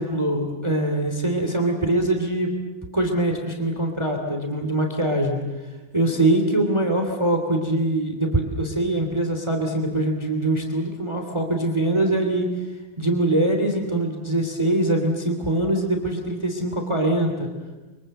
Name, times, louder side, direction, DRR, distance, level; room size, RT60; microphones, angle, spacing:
voice 1, 0.0-2.5 2.9-5.4 5.9-12.5 13.0-17.5, right 1 dB, 15° right, 3 dB, 2.9 m, -23 dB
29.5 x 24.5 x 7.8 m, 1.1 s
omnidirectional pair, 2.2 m